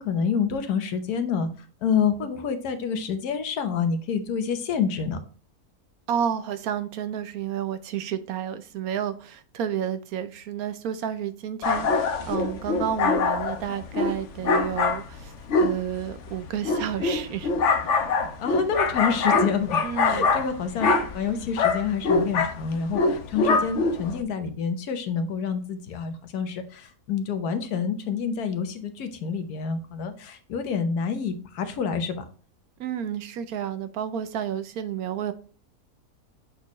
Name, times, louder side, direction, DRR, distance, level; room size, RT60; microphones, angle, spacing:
voice 1, 0.0-5.2 18.4-32.2, left 6 dB, 75° left, 1.3 m, -28 dB
voice 2, 6.1-15.3 15.6-17.5 19.8-20.3 32.8-35.3, right 9 dB, 70° right, 1.1 m, -31 dB
sound 1, 11.6-24.2, left 4 dB, 55° left, 1.0 m, -24 dB
7.4 x 4.2 x 3.0 m
omnidirectional pair, 1.6 m